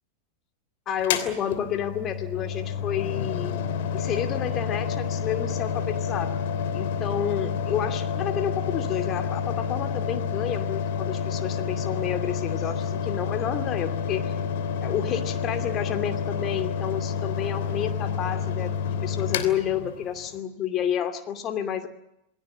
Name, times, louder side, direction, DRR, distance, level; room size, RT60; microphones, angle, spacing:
voice 1, 0.9-3.5 3.9-6.4 6.7-14.3 14.8-21.9, left 9 dB, 30° left, 7 dB, 2.5 m, -30 dB
Mechanical fan, 1.0-20.4, left 6 dB, 50° left, 3.0 m, -29 dB
28.5 x 20.5 x 7.5 m, 0.81 s
figure-of-eight pair, 90°, 0 cm